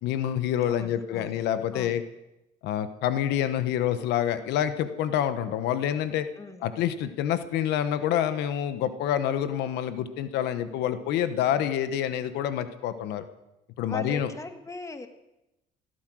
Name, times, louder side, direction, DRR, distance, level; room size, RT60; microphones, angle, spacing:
voice 1, 0.0-2.0 2.6-6.3 6.6-13.2 13.8-14.3, left 10 dB, 85° left, 11 dB, 1.1 m, -27 dB
voice 2, 0.7-1.4 1.7-2.0 6.4-6.7 13.9-15.1, left 2 dB, 20° left, 7 dB, 1.7 m, -40 dB
16.5 x 13.0 x 6.3 m, 0.92 s
cardioid pair, 110°, 17 cm